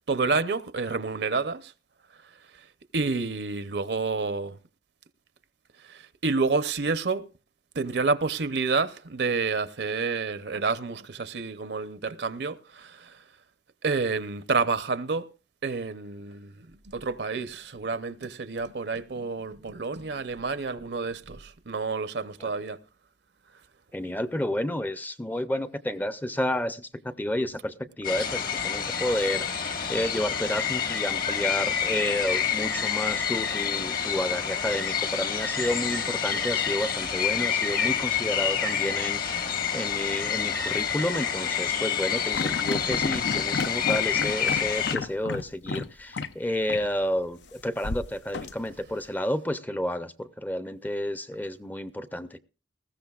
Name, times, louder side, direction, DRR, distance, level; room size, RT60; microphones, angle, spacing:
voice 1, 0.1-1.7 2.9-4.6 5.8-7.2 7.7-13.1 13.8-15.3 15.6-16.7 16.9-22.8, right 4 dB, 70° right, 0.7 m, -29 dB
voice 2, 23.9-52.4, left 1 dB, 10° left, 0.5 m, -31 dB
sound 1, 28.0-45.0, left 7 dB, 55° left, 1.5 m, -28 dB
sound 2, 42.3-45.9 46.1-46.3 46.7-46.9 47.8-48.9, left 4 dB, 85° left, 0.7 m, -32 dB
19.5 x 15.0 x 2.4 m
head